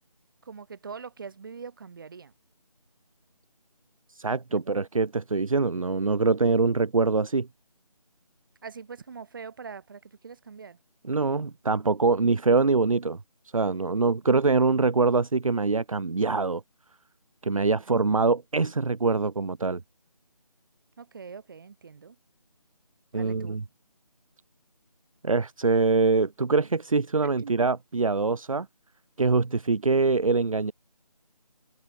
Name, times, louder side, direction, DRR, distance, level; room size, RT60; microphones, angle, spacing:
voice 1, 0.4-2.3 4.5-4.8 8.6-10.8 21.0-22.2 23.1-23.6 27.4-27.5, right 5 dB, 35° right, 4.4 m, -43 dB
voice 2, 4.1-7.5 11.0-13.2 13.5-16.6 17.4-19.8 23.1-23.6 25.2-28.7 29.2-30.7, right 4 dB, 55° right, 1.5 m, -24 dB
figure-of-eight pair, 170°, 20 cm